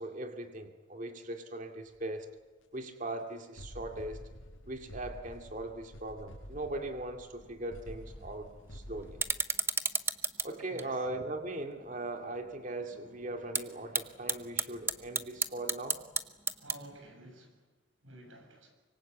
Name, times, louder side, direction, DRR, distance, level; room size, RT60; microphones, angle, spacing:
voice 1, 0.0-2.3 2.7-4.2 4.7-9.2 10.4-16.0, right 2 dB, 40° right, 4 dB, 2.3 m, -39 dB
sound 1, 1.9-2.2 2.6-2.7 3.1-3.2 3.6-9.4, equal, 75° left, 6.0 m, -49 dB
sound 2, 7.4-17.1, right 4 dB, 10° right, 0.7 m, -37 dB
voice 2, 16.6-17.6 18.0-18.7, right 1 dB, 75° right, 4 dB, 6.8 m, -51 dB
25.0 x 23.5 x 8.2 m, 1.2 s
head